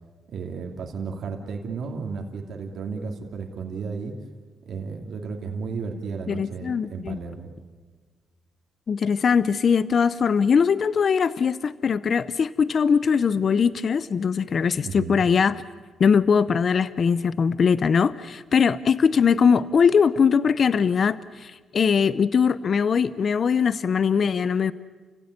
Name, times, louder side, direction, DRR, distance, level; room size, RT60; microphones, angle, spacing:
voice 1, 0.3-4.1 4.6-7.5 14.8-15.3, right 5 dB, 70° right, 2 dB, 2.7 m, -33 dB
voice 2, 6.3-7.2 8.9-15.6 16.0-24.7, left 6 dB, 50° left, 16 dB, 0.7 m, -21 dB
29.0 x 16.5 x 9.8 m, 1.4 s
cardioid pair, 85°, 0 cm